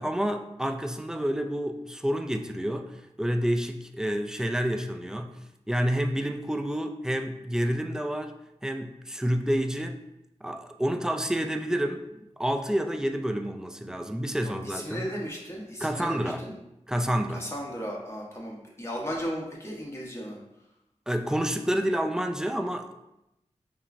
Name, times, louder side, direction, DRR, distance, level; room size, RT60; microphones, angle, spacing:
voice 1, 0.0-5.4 5.7-8.3 8.6-10.0 10.4-12.1 12.4-15.1 15.8-16.4 16.9-17.4 21.1-22.9, equal, 5° right, 5 dB, 0.3 m, -29 dB
voice 2, 14.4-16.5 17.3-20.4, equal, 20° left, -3 dB, 1.1 m, -35 dB
5.3 x 2.1 x 2.5 m, 0.88 s
cardioid pair, 45°, 12 cm